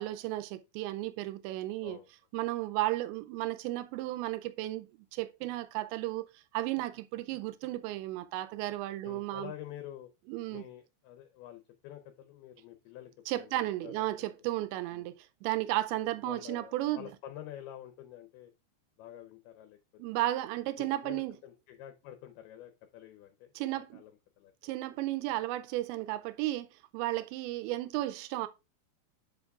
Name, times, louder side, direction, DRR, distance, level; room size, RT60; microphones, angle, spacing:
voice 1, 0.0-2.0 2.3-9.5 10.3-10.6 13.3-17.1 20.0-21.4 23.6-24.0 24.6-28.5, right 16 dB, 90° right, 2.9 m, -34 dB
voice 2, 9.0-10.1 10.5-14.3 14.9-15.1 16.2-18.5 19.0-19.8 20.8-24.1 24.4-24.5, left 12 dB, 80° left, 2.4 m, -48 dB
10.5 x 5.2 x 2.4 m
omnidirectional pair, 5.1 m